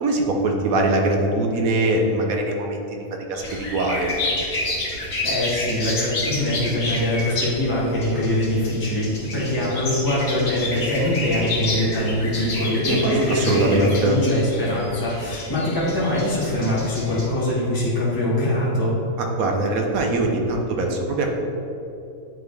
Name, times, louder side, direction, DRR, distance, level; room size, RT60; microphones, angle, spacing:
voice 1, 0.0-4.1 12.9-14.2 19.2-21.4, right 2 dB, 70° right, 2 dB, 1.2 m, -22 dB
sound 1, 3.3-17.3, left 2 dB, 65° left, 1.7 m, -30 dB
voice 2, 5.2-18.9, left 1 dB, 15° left, -8 dB, 1.4 m, -23 dB
9.2 x 3.7 x 3.4 m, 2.8 s
omnidirectional pair, 1.5 m